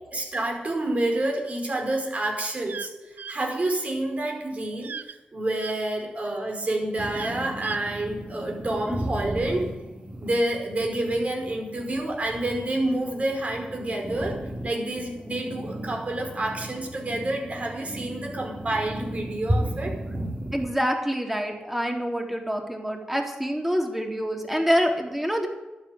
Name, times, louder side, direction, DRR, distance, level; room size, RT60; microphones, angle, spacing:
voice 1, 0.1-9.7 10.2-14.4 14.6-19.9, right 1 dB, 45° right, 2 dB, 5.1 m, -28 dB
sound 1, 2.7-2.9 3.2-3.4 4.8-5.1 5.6-5.7 7.1-7.8, right 6 dB, 75° right, 0.6 m, -37 dB
sound 2, 7.0-20.7, right 1 dB, 30° right, 3.8 m, -34 dB
voice 2, 20.5-25.5, equal, 10° right, 2 dB, 3.7 m, -26 dB
12.0 x 9.0 x 10.0 m, 1.0 s
cardioid pair, 55°, 3 cm